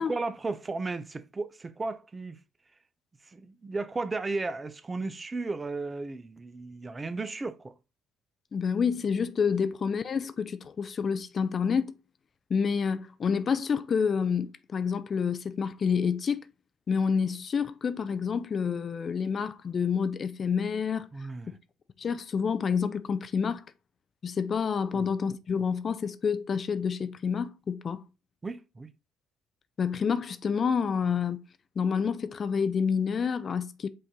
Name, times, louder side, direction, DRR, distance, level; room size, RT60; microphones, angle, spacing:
voice 1, 0.0-2.4 3.3-7.7 21.1-21.6 24.9-25.1 28.4-28.9, right 3 dB, 25° right, 0.5 m, -34 dB
voice 2, 8.5-11.9 12.5-16.5 16.9-21.1 22.0-23.6 24.2-28.0 29.8-31.4 31.8-33.9, left 6 dB, 45° left, 0.4 m, -28 dB
5.4 x 2.6 x 3.6 m
hypercardioid pair, 55°, 0 cm